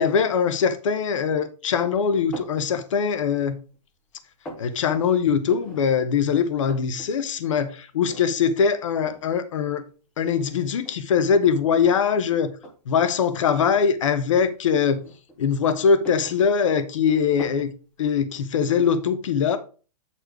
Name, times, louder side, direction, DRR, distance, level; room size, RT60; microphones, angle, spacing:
voice 1, 0.0-3.6 4.6-9.8 10.2-12.5 12.9-15.0 15.4-17.7 18.0-19.6, left 6 dB, 50° left, 0.9 m, -22 dB
sound 1, 2.3-2.6 3.2-3.8 4.1-4.7 5.5-5.8 6.2-6.3 6.5-7.1 7.4-7.5 8.1-8.5 9.1-9.3 10.2-10.3 10.8-12.1 12.5-12.7 13.5-13.9 14.8-15.5 15.9-16.9 17.4-17.7, equal, 5° left, 0.5 m, -41 dB
8.2 x 4.3 x 4.7 m
hypercardioid pair, 175°, 21 cm